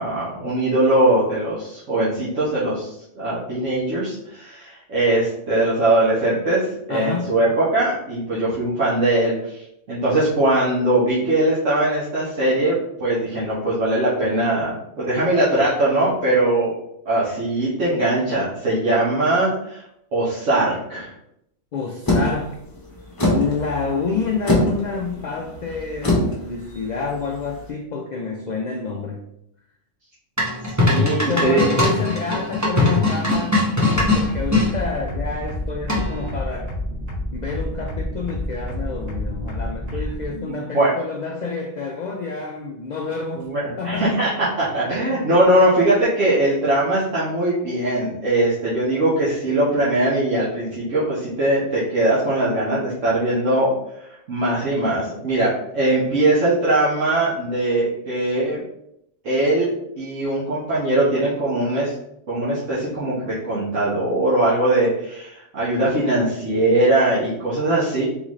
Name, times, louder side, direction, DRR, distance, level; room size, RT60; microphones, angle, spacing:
voice 1, 0.0-16.8 17.0-19.8 20.1-21.1 30.8-31.7 40.3-40.9 43.3-53.7 54.0-58.6 59.2-59.7 60.0-61.9 62.3-68.0, right 1 dB, 85° right, -9 dB, 1.6 m, -21 dB
voice 2, 6.9-7.3 21.7-22.6 23.3-29.2 31.0-36.7 37.3-44.1, left 4 dB, 60° left, 3 dB, 0.4 m, -28 dB
sound 1, 22.1-27.7, left 1 dB, 20° left, 0.8 m, -24 dB
sound 2, 30.4-34.7 35.9-36.3, left 2 dB, 15° right, 1.0 m, -20 dB
sound 3, 33.9-40.2, left 1 dB, 35° right, 1.4 m, -29 dB
3.9 x 3.8 x 3.1 m, 0.78 s
omnidirectional pair, 1.2 m